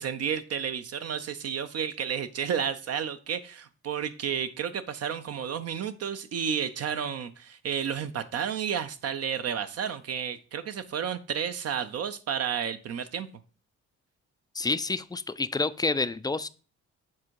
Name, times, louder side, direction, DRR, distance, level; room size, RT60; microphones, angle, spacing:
voice 1, 0.0-13.3, right 8 dB, 55° right, 0.6 m, -31 dB
voice 2, 14.6-16.5, left 3 dB, 15° left, 0.3 m, -28 dB
7.5 x 3.6 x 4.6 m
cardioid pair, 90°, 30 cm